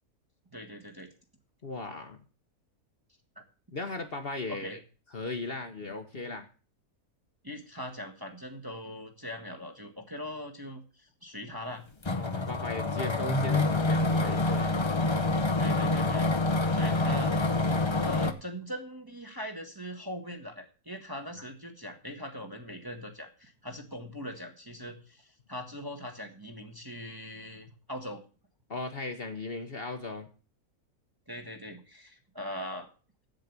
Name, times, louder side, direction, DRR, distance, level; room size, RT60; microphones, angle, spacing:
voice 1, 0.5-1.1 4.5-4.8 7.4-11.8 15.6-16.3 16.7-17.4 18.0-28.2 31.3-32.9, equal, 15° right, 3 dB, 1.2 m, -41 dB
voice 2, 1.6-2.2 3.7-4.8 5.1-6.5 12.1-14.8 17.1-17.2 17.5-17.9 28.7-30.3, left 3 dB, 45° left, 6 dB, 1.2 m, -37 dB
sound 1, 12.0-18.3, left 2 dB, 25° left, 0.7 m, -27 dB
7.9 x 7.5 x 8.1 m, 0.36 s
omnidirectional pair, 1.6 m